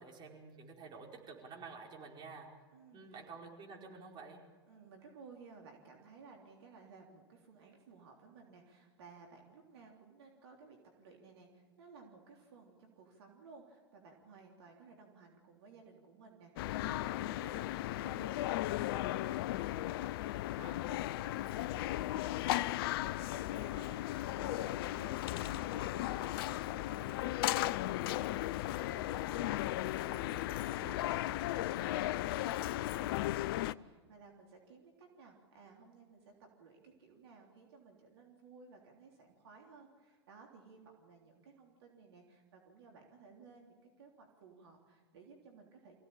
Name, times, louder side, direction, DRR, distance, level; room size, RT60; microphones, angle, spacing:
voice 1, 0.0-2.5 2.9-4.4, right 4 dB, 35° right, 0 dB, 4.9 m, -50 dB
voice 2, 2.7-3.2 4.6-26.3 26.7-45.9, right 4 dB, 70° right, 1 dB, 3.4 m, -57 dB
sound 1, 16.6-33.7, left 15 dB, 60° left, 0.6 m, -36 dB
25.0 x 16.5 x 8.8 m, 1.5 s
hypercardioid pair, 100°, 14 cm